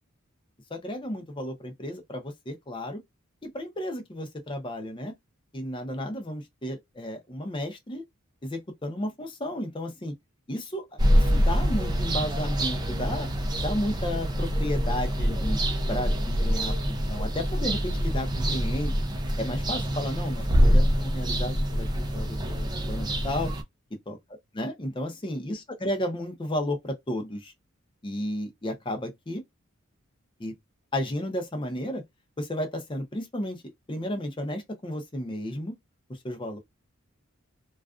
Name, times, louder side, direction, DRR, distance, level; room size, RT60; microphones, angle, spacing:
voice 1, 0.7-3.0 3.4-5.1 5.5-8.0 8.4-10.1 10.5-13.3 13.6-15.6 15.9-18.9 19.4-23.5 24.1-24.2 24.5-27.5 28.0-29.4 30.4-30.5 30.9-32.0 32.4-33.6 33.9-35.7 36.1-36.6, left 1 dB, 25° left, 0.6 m, -33 dB
sound 1, 11.0-23.6, equal, 20° right, 0.4 m, -25 dB
2.4 x 2.3 x 2.4 m
head